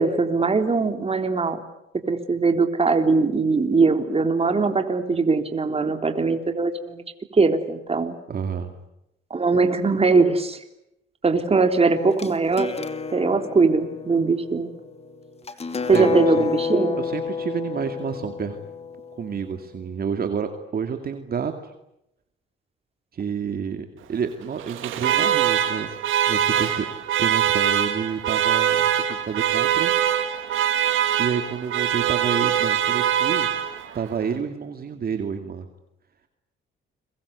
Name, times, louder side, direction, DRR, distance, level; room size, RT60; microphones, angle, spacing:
voice 1, 0.0-1.6 2.1-7.0 7.3-8.2 9.3-10.6 11.2-12.7 13.1-14.7 15.9-17.0, right 4 dB, 30° right, 6 dB, 3.5 m, -21 dB
voice 2, 8.3-8.7 15.5-15.6 15.9-16.4 17.0-18.6 19.2-21.7 23.1-25.9 26.3-26.9 27.2-29.9 31.2-33.5 33.9-35.7, right 6 dB, 50° right, 6 dB, 2.5 m, -29 dB
sound 1, 11.9-19.7, left 5 dB, 30° left, 2.4 m, -30 dB
Alarm, 24.6-34.0, right 10 dB, 85° right, 2.9 m, -23 dB
30.0 x 23.0 x 8.3 m, 0.83 s
cardioid pair, 90°, 20 cm